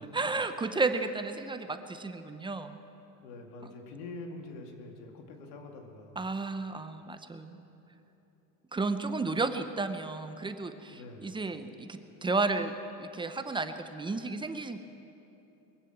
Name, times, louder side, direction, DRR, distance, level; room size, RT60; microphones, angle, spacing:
voice 1, 0.1-2.8 6.2-7.6 8.7-14.8, right 3 dB, 10° right, 9 dB, 0.6 m, -33 dB
voice 2, 3.2-6.2 10.9-11.3, left 2 dB, 75° left, 2 dB, 2.3 m, -45 dB
22.5 x 7.5 x 7.7 m, 2.9 s
supercardioid pair, 110°, 46 cm